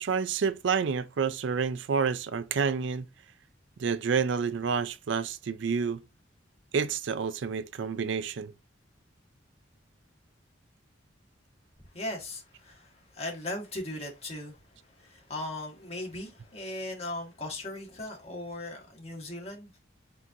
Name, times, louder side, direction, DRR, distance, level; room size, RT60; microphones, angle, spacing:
voice 1, 0.0-3.0 3.8-6.0 6.7-8.5, right 6 dB, 70° right, 0.4 m, -29 dB
voice 2, 11.9-19.7, left 1 dB, 35° left, 1.6 m, -38 dB
7.3 x 2.8 x 2.5 m
head